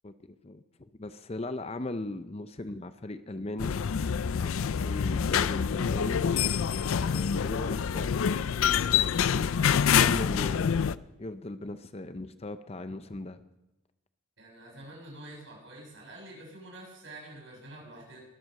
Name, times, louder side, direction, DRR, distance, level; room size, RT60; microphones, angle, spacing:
voice 1, 0.0-3.8 4.4-6.3 7.0-9.4 9.9-10.7 11.2-13.4, left 2 dB, 30° left, 11 dB, 0.6 m, -38 dB
sound 1, 3.6-10.9, left 7 dB, 85° left, 0.4 m, -26 dB
voice 2, 14.4-18.2, right 1 dB, 65° right, -2 dB, 7.3 m, -47 dB
23.0 x 7.8 x 6.5 m, 0.96 s
head